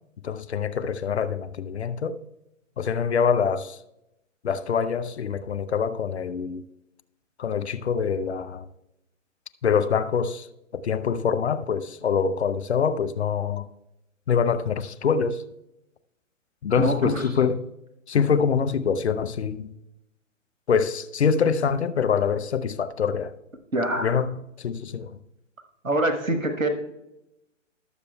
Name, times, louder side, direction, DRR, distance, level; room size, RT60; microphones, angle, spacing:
voice 1, 0.2-2.2 2.8-3.8 4.4-6.6 7.4-8.6 9.6-10.5 10.7-13.7 14.3-15.4 16.6-17.6 18.1-19.7 20.7-23.3 24.0-25.1, left 6 dB, 55° left, 0.6 m, -25 dB
voice 2, 16.8-17.2 23.7-24.2 25.8-26.7, right 1 dB, 90° right, 1.2 m, -25 dB
19.5 x 6.7 x 2.2 m
figure-of-eight pair, 125°, 39 cm